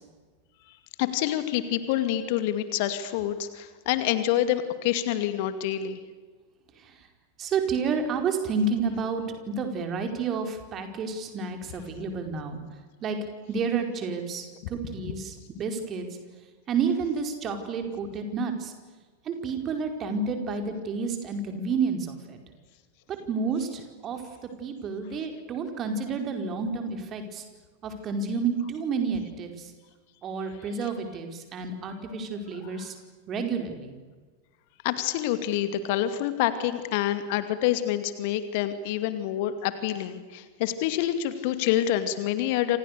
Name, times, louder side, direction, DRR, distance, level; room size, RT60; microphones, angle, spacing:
voice 1, 0.7-6.0 15.0-15.1 30.6-30.7 31.9-32.1 32.6-32.9 34.8-42.8, left 12 dB, 50° left, 10 dB, 2.4 m, -27 dB
voice 2, 7.4-9.2 9.6-12.6 13.0-13.2 13.5-16.1 16.7-18.7 19.3-22.4 23.3-24.2 24.6-27.4 27.8-29.5 30.2-32.9 33.3-33.9, right 5 dB, 30° right, 5 dB, 4.8 m, -30 dB
28.5 x 27.5 x 6.8 m, 1.4 s
figure-of-eight pair, 90°, 0 cm